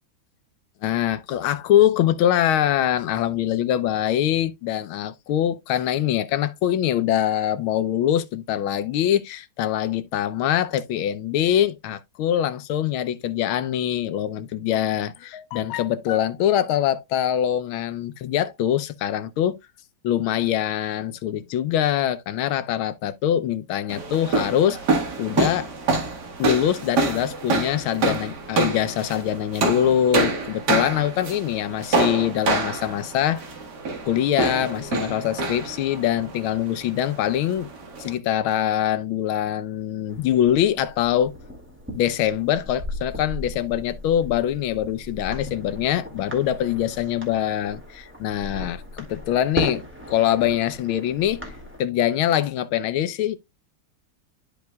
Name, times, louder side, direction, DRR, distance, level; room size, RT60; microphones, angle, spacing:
voice 1, 0.8-19.6 20.0-24.8 25.2-25.7 26.4-33.4 34.0-37.7 38.0-41.3 42.0-49.8 50.1-51.4 51.8-53.4, left 11 dB, 85° left, 1.6 m, -23 dB
sound 1, 23.9-38.1, right 3 dB, 55° right, 2.1 m, -26 dB
sound 2, 40.1-51.8, left 1 dB, 5° right, 2.0 m, -36 dB
11.5 x 5.0 x 2.3 m
omnidirectional pair, 2.2 m